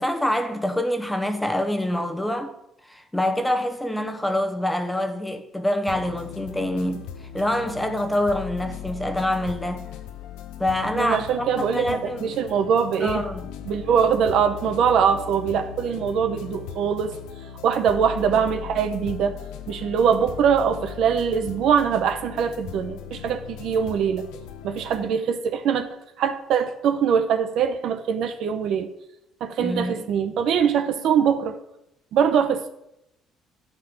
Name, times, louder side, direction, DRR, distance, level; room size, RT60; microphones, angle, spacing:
voice 1, 0.0-2.5 2.8-9.9 10.6-12.4 13.0-13.5 29.6-30.1, left 1 dB, 5° left, 1.0 m, -26 dB
sound 1, 5.9-25.1, left 9 dB, 90° left, 0.6 m, -38 dB
voice 2, 11.0-13.3 13.7-17.1 17.6-19.4 19.7-24.3 24.6-25.9 26.2-28.9 29.4-31.6 32.1-32.7, right 7 dB, 70° right, 0.9 m, -22 dB
11.5 x 3.9 x 7.2 m
cardioid pair, 105°, 0 cm